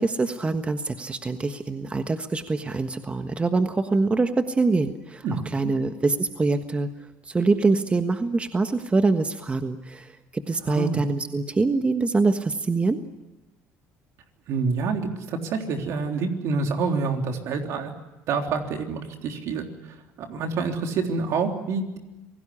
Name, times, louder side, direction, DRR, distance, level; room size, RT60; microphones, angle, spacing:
voice 1, 0.0-5.3 5.5-6.9 7.2-13.0, right 3 dB, 20° right, 8 dB, 1.4 m, -24 dB
voice 2, 5.2-5.7 10.7-11.0 14.5-17.9 18.3-19.6 20.2-22.0, right 4 dB, 65° right, 4 dB, 3.5 m, -27 dB
26.5 x 18.0 x 9.9 m, 1.0 s
supercardioid pair, 85°, 5 cm